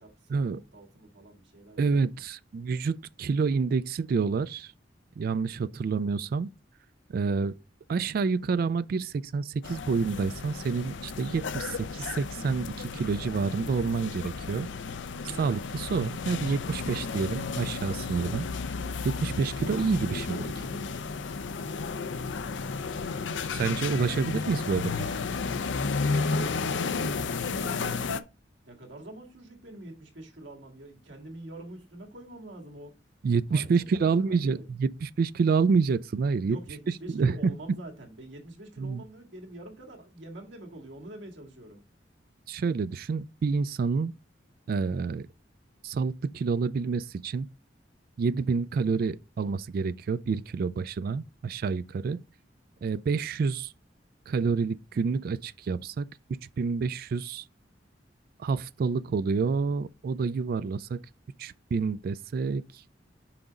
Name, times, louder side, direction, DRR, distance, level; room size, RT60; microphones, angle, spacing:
voice 1, 0.0-1.9 28.7-32.9 33.5-34.6 36.5-41.8, right 1 dB, 85° right, 1.9 m, -46 dB
voice 2, 1.8-4.7 5.2-6.5 7.1-7.5 7.9-14.7 15.2-18.5 19.0-20.5 23.5-25.1 33.2-36.6 37.1-37.5 38.8-39.0 42.5-44.1 44.7-45.3 45.8-47.5 48.2-52.2 52.8-53.7 54.3-56.1 56.6-57.4 58.4-61.0 61.4-62.6, right 5 dB, 55° right, 0.3 m, -28 dB
sound 1, 9.6-28.2, left 4 dB, 80° left, 0.5 m, -33 dB
5.9 x 5.0 x 4.0 m
head